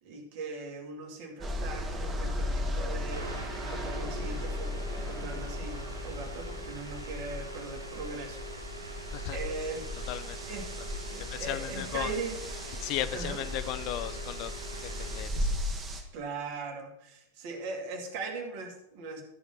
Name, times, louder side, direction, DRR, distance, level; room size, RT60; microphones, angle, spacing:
voice 1, 0.0-9.0 9.3-9.9 10.5-10.7 11.1-12.4 13.1-13.4 16.1-19.2, right 4 dB, 50° right, 3 dB, 2.2 m, -40 dB
sound 1, 1.4-16.0, left 1 dB, 20° right, 1.7 m, -36 dB
sound 2, 3.1-15.2, right 1 dB, 85° right, 0.9 m, -44 dB
voice 2, 10.1-10.4 10.8-10.9 11.1-12.1 12.8-14.5 14.8-15.4, left 13 dB, 40° left, 13 dB, 0.6 m, -36 dB
13.0 x 5.0 x 5.8 m, 0.84 s
figure-of-eight pair, 90°, 0 cm